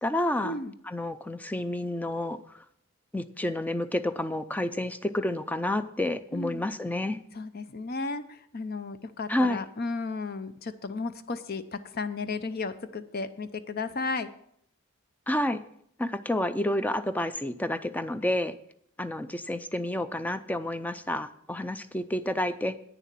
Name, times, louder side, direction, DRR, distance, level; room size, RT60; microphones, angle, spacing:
voice 1, 0.0-0.6 0.9-2.6 3.1-7.2 9.3-9.6 15.3-15.6 16.0-18.6 19.0-22.8, left 1 dB, 10° left, 12 dB, 0.4 m, -29 dB
voice 2, 6.3-6.7 7.3-14.3, left 3 dB, 45° left, 12 dB, 0.6 m, -34 dB
9.5 x 6.9 x 7.5 m, 0.69 s
head